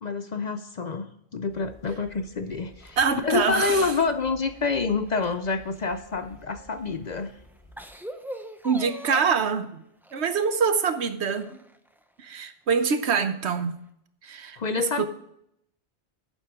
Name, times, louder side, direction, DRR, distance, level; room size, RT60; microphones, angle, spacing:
voice 1, 0.0-3.0 3.2-7.3 14.6-15.1, left 4 dB, 50° left, 10 dB, 0.6 m, -27 dB
sound 1, 1.5-7.9, equal, 15° left, 4.4 m, -52 dB
sound 2, 2.8-4.7 5.1-6.4 7.0-7.1 7.6-9.5 10.0-10.8 11.3-12.0 12.4-12.5 13.6-13.7, equal, ahead, 0.6 m, -42 dB
voice 2, 3.0-3.9 8.6-9.8 10.1-11.5 12.2-13.7 14.2-15.1, right 6 dB, 75° right, 10 dB, 1.2 m, -25 dB
11.5 x 9.1 x 3.7 m, 0.74 s
omnidirectional pair, 1.1 m